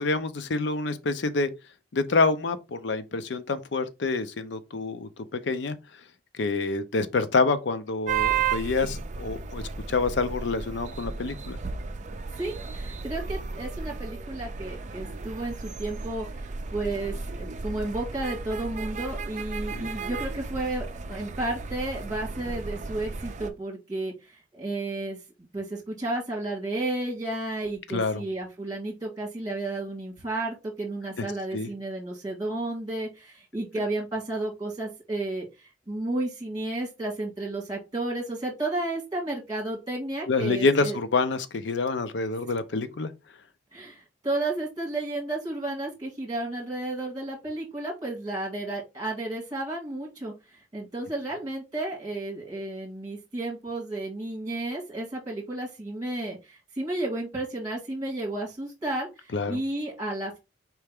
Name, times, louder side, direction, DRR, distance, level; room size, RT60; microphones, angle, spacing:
voice 1, 0.0-1.5 1.9-5.8 6.4-9.6 9.9-11.6 19.7-19.9 27.9-28.2 31.2-31.3 31.5-31.7 40.3-43.1 59.3-59.6, left 3 dB, 65° left, 0.5 m, -27 dB
sound 1, 8.1-23.5, right 5 dB, 40° right, 0.4 m, -34 dB
voice 2, 12.4-16.3 16.7-24.1 24.5-25.2 25.5-41.0 43.7-50.3 50.7-60.4, right 2 dB, 20° right, 1.8 m, -32 dB
4.5 x 3.3 x 3.5 m
head